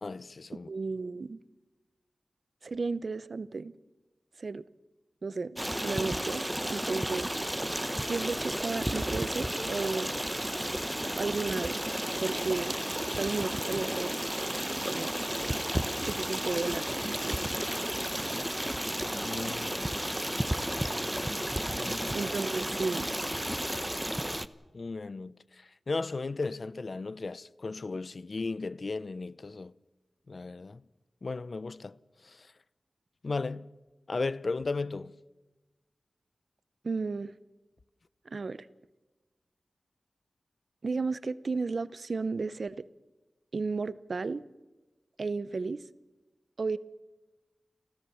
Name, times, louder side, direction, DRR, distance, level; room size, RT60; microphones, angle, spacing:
voice 1, 0.0-0.7 19.2-19.7 21.7-22.2 24.7-29.7 30.3-30.8 31.2-32.0 32.2-32.5 33.2-33.7 34.1-35.1, left 3 dB, 55° left, 0.6 m, -35 dB
voice 2, 0.7-1.4 2.6-3.7 4.4-4.6 5.2-7.3 8.1-10.1 11.2-11.8 12.2-12.8 13.2-14.1 14.9-15.1 16.0-17.3 22.1-23.1 36.8-37.3 38.3-38.7 40.8-42.8 43.5-44.4 45.2-45.8 46.6-46.8, right 4 dB, 65° right, 0.7 m, -33 dB
Stream, 5.6-24.5, equal, 10° right, 0.8 m, -32 dB
30.0 x 14.0 x 7.1 m
wide cardioid pair, 80°, 0 cm